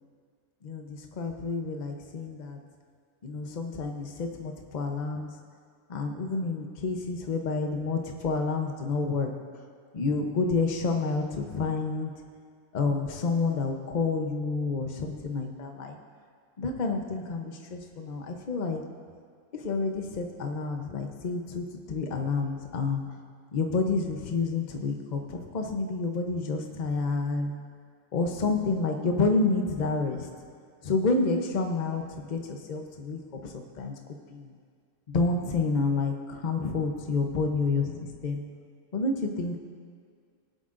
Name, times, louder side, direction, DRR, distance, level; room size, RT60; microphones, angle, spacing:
voice 1, 0.6-2.6 3.2-5.3 5.9-9.3 9.9-12.1 12.7-16.0 16.6-18.8 19.5-23.0 23.5-27.5 28.1-30.3 30.8-33.9 34.3-34.5 35.1-38.4 38.9-39.6, left 3 dB, 35° left, 4 dB, 0.8 m, -29 dB
22.0 x 7.8 x 2.6 m, 2.1 s
omnidirectional pair, 1.6 m